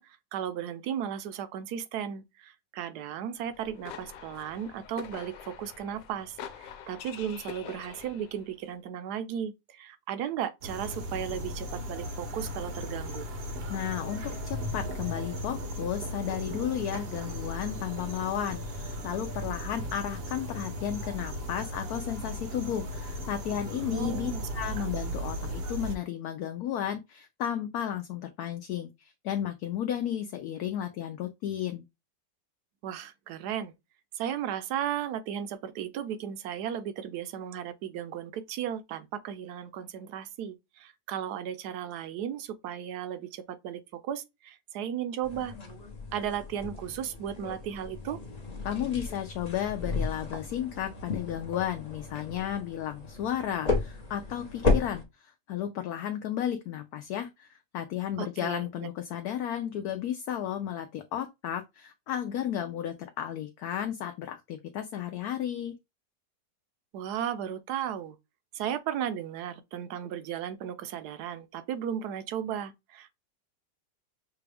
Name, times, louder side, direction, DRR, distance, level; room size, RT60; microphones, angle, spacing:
voice 1, 0.0-13.3 23.9-24.5 24.8-24.9 32.8-33.7 34.2-45.5 46.1-48.2 58.2-58.9 66.9-68.2 68.5-73.2, right 9 dB, 70° right, 1.1 m, -35 dB
sound 1, 3.4-8.5, left 8 dB, 85° left, 1.3 m, -45 dB
sound 2, 10.6-25.9, equal, 50° right, 0.7 m, -36 dB
voice 2, 13.7-31.9 48.6-65.7, left 10 dB, 70° left, 0.9 m, -33 dB
sound 3, 45.2-55.0, left 3 dB, 35° left, 0.6 m, -34 dB
5.9 x 2.3 x 3.3 m
omnidirectional pair, 1.9 m